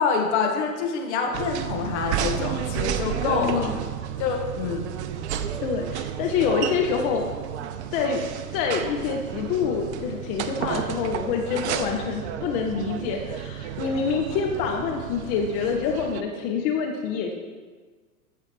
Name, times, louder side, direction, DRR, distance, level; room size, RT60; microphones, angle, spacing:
voice 1, 0.0-3.7 4.2-4.8, left 5 dB, 45° left, 2 dB, 1.6 m, -26 dB
sound 1, 1.3-16.2, right 9 dB, 45° right, 0.6 m, -32 dB
voice 2, 3.1-3.8 5.6-7.3 7.9-8.2 8.5-17.3, left 6 dB, 20° left, 2 dB, 0.4 m, -26 dB
14.5 x 6.5 x 3.1 m, 1.4 s
figure-of-eight pair, 95°, 47 cm